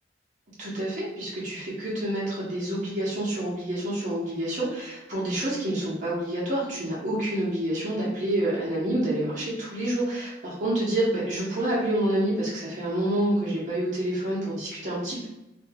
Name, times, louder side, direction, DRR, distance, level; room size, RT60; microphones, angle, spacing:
voice 1, 0.6-15.3, right 1 dB, 40° right, -7 dB, 0.8 m, -28 dB
2.7 x 2.2 x 3.4 m, 0.95 s
head